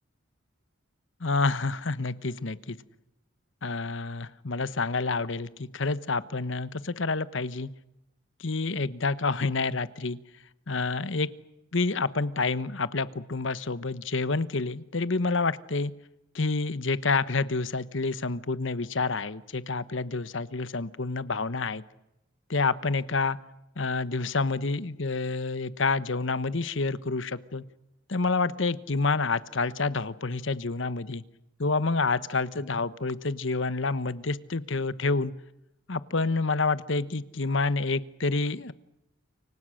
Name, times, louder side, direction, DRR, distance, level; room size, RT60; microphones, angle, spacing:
voice 1, 1.2-2.8 3.6-7.7 8.4-10.2 10.7-11.3 11.7-15.9 16.3-21.8 22.5-23.4 23.8-27.6 28.1-31.2 31.6-35.3 35.9-38.7, left 3 dB, 65° left, 16 dB, 1.1 m, -28 dB
29.0 x 24.5 x 6.5 m, 0.90 s
head